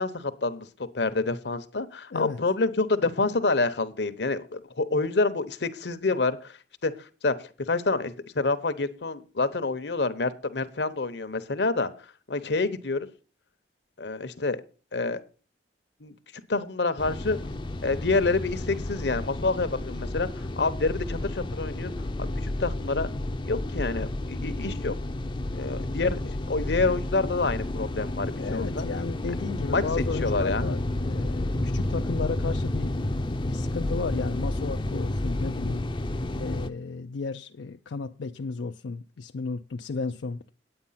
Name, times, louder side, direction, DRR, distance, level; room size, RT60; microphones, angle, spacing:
voice 1, 0.0-7.3 7.7-11.9 12.3-13.1 14.0-14.6 14.9-15.2 16.0-17.4 17.8-20.3 20.6-21.9 22.2-23.1 23.4-24.9 25.5-28.9 29.7-29.8 30.2-30.7, left 3 dB, 70° left, 0.9 m, -27 dB
sound 1, 17.0-36.7, left 1 dB, 25° left, 0.5 m, -31 dB
voice 2, 28.4-35.8 36.1-40.5, left 4 dB, 90° left, 0.5 m, -34 dB
9.3 x 8.9 x 5.7 m
head